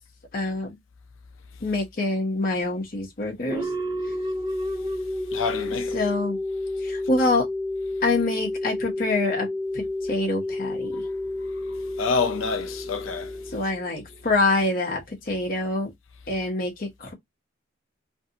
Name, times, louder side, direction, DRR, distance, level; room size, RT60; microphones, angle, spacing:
voice 1, 0.3-0.7 1.6-3.6 5.9-6.4 6.8-7.5 8.0-9.5 9.7-9.8 10.1-10.9 13.5-15.9 16.3-17.1, left 2 dB, 45° left, 0.7 m, -25 dB
sound 1, 3.5-14.1, left 1 dB, 20° right, 0.4 m, -30 dB
voice 2, 5.3-6.0 10.9-11.0 12.0-13.4, left 5 dB, 75° left, 0.5 m, -27 dB
2.6 x 2.5 x 2.7 m
head